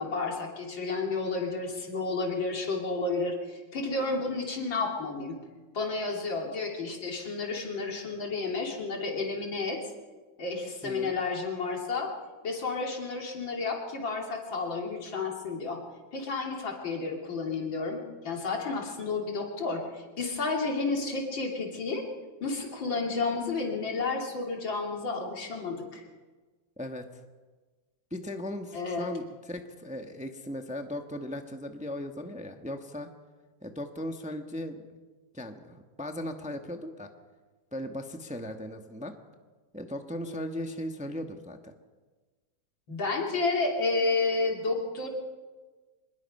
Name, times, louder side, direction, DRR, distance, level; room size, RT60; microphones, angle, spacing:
voice 1, 0.0-5.4 5.7-9.8 10.4-12.1 12.4-15.8 16.1-22.0 22.4-26.0 28.7-29.1 42.9-45.1, left 3 dB, 80° left, 0 dB, 3.7 m, -31 dB
voice 2, 10.8-11.1 26.8-27.2 28.1-33.1 33.6-34.8 35.3-37.1 37.7-39.1 39.7-41.7, left 1 dB, 5° right, 5 dB, 0.9 m, -37 dB
24.5 x 20.5 x 5.5 m, 1.3 s
omnidirectional pair, 2.1 m